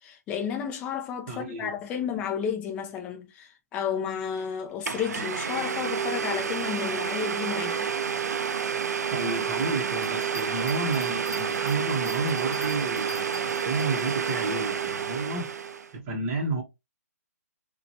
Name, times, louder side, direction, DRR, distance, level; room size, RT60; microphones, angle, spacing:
voice 1, 0.0-7.9, left 8 dB, 15° left, 0.4 m, -32 dB
voice 2, 1.3-2.1 9.1-15.5 15.9-16.6, right 3 dB, 25° right, 0.7 m, -31 dB
Domestic sounds home sounds, 4.4-4.5 4.8-15.9, right 7 dB, 85° right, 0.4 m, -29 dB
sound 1, 10.0-14.4, right 1 dB, 55° left, 1.3 m, -43 dB
2.7 x 2.1 x 2.6 m
hypercardioid pair, 155°, 9 cm